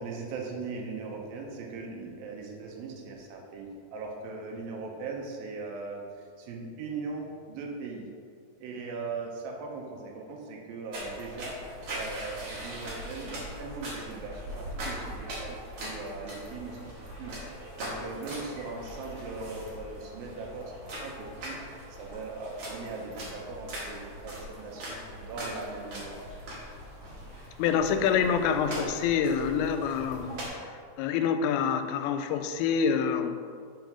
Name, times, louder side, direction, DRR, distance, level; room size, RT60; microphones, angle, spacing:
voice 1, 0.0-6.0 6.4-8.1 8.6-11.6 11.9-16.8 17.2-17.3 17.8-21.6 22.0-26.1, right 4 dB, 75° right, 0 dB, 2.4 m, -39 dB
sound 1, 10.9-30.5, equal, 55° right, 2.7 m, -41 dB
voice 2, 27.6-33.4, left 7 dB, 90° left, 8 dB, 2.5 m, -27 dB
6.1 x 4.4 x 5.9 m, 2.2 s
omnidirectional pair, 4.5 m